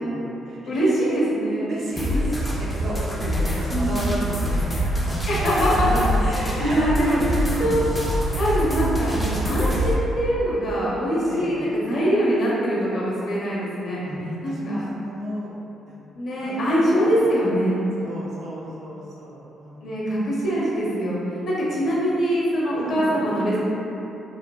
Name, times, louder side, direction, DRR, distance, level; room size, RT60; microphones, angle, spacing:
voice 1, 0.0-1.1 1.7-6.2 6.6-7.9 11.3-11.7 14.0-15.5 15.8-16.0 16.4-17.1 18.0-19.8 21.7-21.8 22.8-23.2, right 1 dB, 65° right, -6 dB, 0.6 m, -33 dB
voice 2, 0.7-1.6 3.7-4.0 5.3-7.9 8.4-14.0 14.4-14.8 16.2-17.8 19.8-21.2 21.5-23.6, equal, 60° left, -7 dB, 0.7 m, -23 dB
sound 1, 2.0-9.9, equal, 15° left, 0.4 m, -25 dB
3.1 x 2.1 x 2.3 m, 3.0 s
cardioid pair, 90°, 0 cm